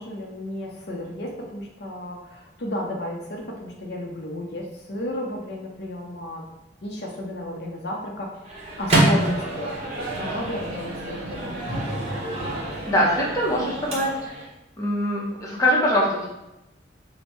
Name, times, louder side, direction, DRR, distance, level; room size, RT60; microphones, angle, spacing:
voice 1, 0.0-6.4 6.8-8.3 8.8-11.6, left 1 dB, 60° left, 0 dB, 0.6 m, -33 dB
Microwave oven, 8.4-14.5, right 1 dB, 35° right, 1.0 m, -27 dB
voice 2, 12.9-14.2 14.8-16.3, equal, 20° left, -4 dB, 0.8 m, -22 dB
5.2 x 2.1 x 3.0 m, 0.93 s
head